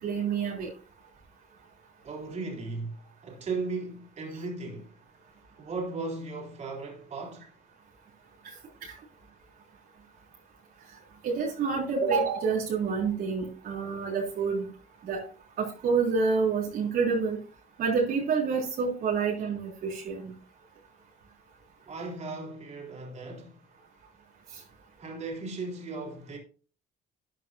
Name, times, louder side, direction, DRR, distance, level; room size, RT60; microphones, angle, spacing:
voice 1, 0.0-0.7 11.2-14.6 15.0-15.2 15.6-17.4 17.8-20.3, right 5 dB, 60° right, 3.3 m, -28 dB
voice 2, 2.0-2.9 3.2-4.9 5.6-7.5 21.9-23.6 25.0-26.4, right 3 dB, 40° right, 3.9 m, -36 dB
13.0 x 9.2 x 2.7 m
cardioid pair, 110°, 17 cm